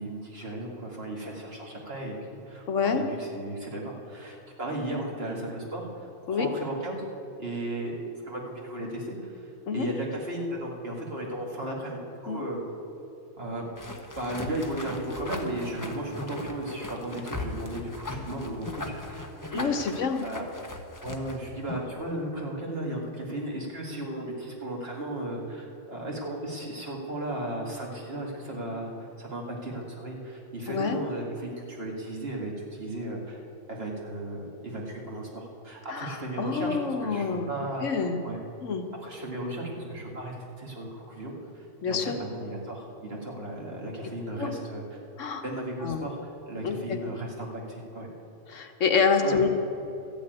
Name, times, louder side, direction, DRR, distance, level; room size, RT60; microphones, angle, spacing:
voice 1, 0.0-2.2 2.5-7.0 7.4-7.9 8.2-12.6 13.4-13.7 14.2-19.3 19.5-20.4 21.0-37.9 38.2-38.4 39.0-45.0 45.4-48.1 49.2-49.5, right 1 dB, 50° right, -2 dB, 2.3 m, -35 dB
voice 2, 2.7-3.0 6.3-6.5 9.7-9.9 12.3-12.4 19.5-20.2 30.7-31.0 35.9-37.5 37.8-38.2 38.6-38.9 41.8-42.2 44.4-44.5 45.2-45.4 45.8-46.0 46.6-47.0 48.5-49.5, left 5 dB, 80° left, 5 dB, 1.3 m, -27 dB
sound 1, 13.8-22.0, left 2 dB, 15° left, 0.8 m, -38 dB
13.5 x 7.1 x 9.0 m, 2.8 s
omnidirectional pair, 1.3 m